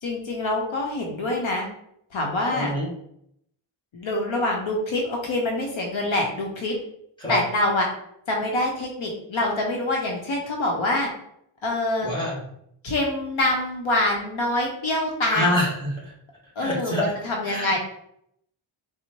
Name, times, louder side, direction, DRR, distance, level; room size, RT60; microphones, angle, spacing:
voice 1, 0.0-1.7 2.1-2.7 3.9-6.8 7.3-7.9 8.3-11.1 11.6-12.1 12.8-15.6 16.6-17.8, left 1 dB, 70° left, 0 dB, 0.8 m, -25 dB
voice 2, 2.5-2.9 7.2-7.4 12.0-12.4 15.3-16.1 16.6-17.1 17.4-17.8, left 1 dB, 10° left, -5 dB, 1.3 m, -26 dB
4.4 x 2.1 x 2.8 m, 0.71 s
wide cardioid pair, 105°, 49 cm